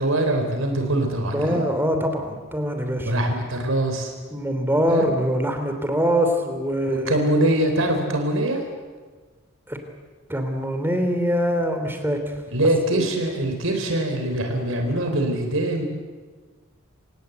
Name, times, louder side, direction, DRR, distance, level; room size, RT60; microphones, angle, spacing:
voice 1, 0.0-1.6 3.0-4.1 4.9-5.1 6.9-8.6 12.5-15.8, right 1 dB, 75° right, 4 dB, 4.1 m, -23 dB
voice 2, 1.3-3.1 4.3-7.1 9.7-9.8 10.3-12.4 12.9-13.1, equal, 10° right, 6 dB, 3.1 m, -23 dB
27.0 x 18.5 x 8.1 m, 1.4 s
head